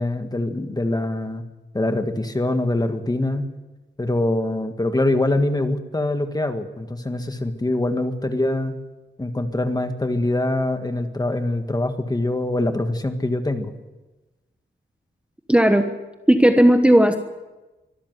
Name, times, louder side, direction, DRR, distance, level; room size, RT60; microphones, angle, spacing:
voice 1, 0.0-1.4 1.7-3.5 4.0-8.8 9.2-13.7, left 2 dB, 20° left, 7 dB, 1.7 m, -24 dB
voice 2, 15.5-15.9 16.3-17.2, right 1 dB, 5° right, 6 dB, 1.2 m, -14 dB
24.0 x 13.5 x 9.3 m, 1.1 s
wide cardioid pair, 135°, 20 cm